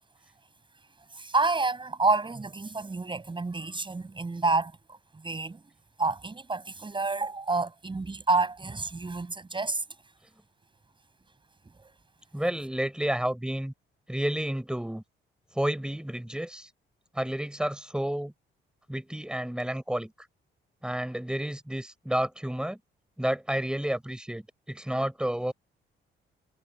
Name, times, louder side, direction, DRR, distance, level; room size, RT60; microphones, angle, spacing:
voice 1, 1.1-5.6 6.0-9.8 11.8-11.9, right 3 dB, 25° right, 6.3 m, -29 dB
voice 2, 12.3-13.7 14.1-15.0 15.6-16.7 17.1-18.3 18.9-20.1 20.8-22.8 23.2-24.4 24.7-25.5, right 1 dB, 5° right, 5.7 m, -30 dB
cardioid pair, 90°, 20 cm